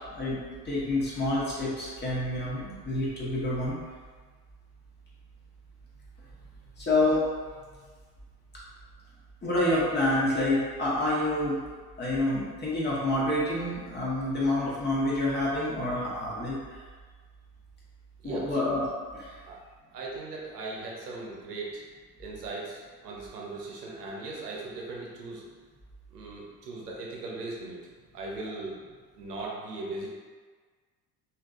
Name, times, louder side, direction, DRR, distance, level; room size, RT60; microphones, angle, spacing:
voice 1, 0.6-3.8 6.8-7.3 9.4-11.6 12.0-16.8 18.2-18.8 19.1-19.3, left 1 dB, 20° left, -7 dB, 1.2 m, -28 dB
voice 2, 18.2-18.7 19.4-19.6 19.9-21.9 22.2-25.4 26.1-27.8 28.1-28.8 29.1-30.1, right 2 dB, 75° right, -3 dB, 0.8 m, -38 dB
3.6 x 2.7 x 2.5 m, 1.5 s
figure-of-eight pair, 65°, 47 cm